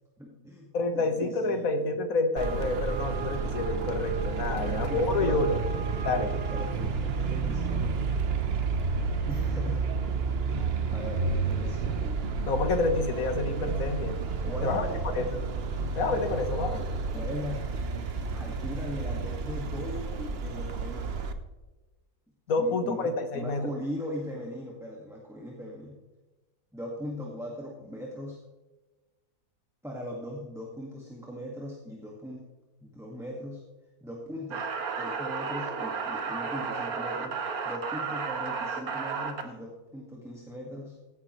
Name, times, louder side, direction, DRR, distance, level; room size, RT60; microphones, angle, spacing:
voice 1, 0.2-1.8 4.5-5.6 6.0-8.0 9.3-9.8 10.2-10.6 10.9-12.1 14.4-15.0 17.1-17.7 18.3-21.1 22.6-25.9 26.7-28.4 29.8-32.5 32.8-33.6 34.0-34.7 35.0-37.4 37.6-41.0, left 1 dB, ahead, -2 dB, 1.6 m, -39 dB
voice 2, 0.7-5.6 6.0-6.4 12.5-14.2 14.6-14.8 15.2-15.4 15.9-16.8 22.5-23.7, left 3 dB, 60° left, 7 dB, 1.7 m, -28 dB
Traffic noise roadway noise, 2.4-21.3, right 4 dB, 45° right, 0.9 m, -31 dB
sound 1, 34.5-39.4, right 5 dB, 70° right, 1.7 m, -33 dB
16.0 x 9.7 x 3.1 m, 1.2 s
omnidirectional pair, 1.7 m